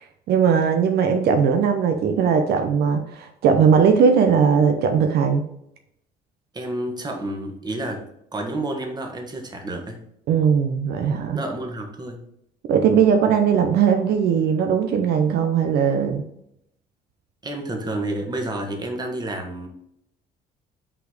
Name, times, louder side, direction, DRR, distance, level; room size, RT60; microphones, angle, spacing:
voice 1, 0.0-5.5 10.3-11.4 12.7-16.2, right 6 dB, 75° right, 6 dB, 0.7 m, -19 dB
voice 2, 6.5-8.0 8.3-10.1 11.3-12.3 17.4-19.7, right 1 dB, 25° right, 3 dB, 1.5 m, -30 dB
5.6 x 4.2 x 4.9 m, 0.75 s
cardioid pair, 110°, 17 cm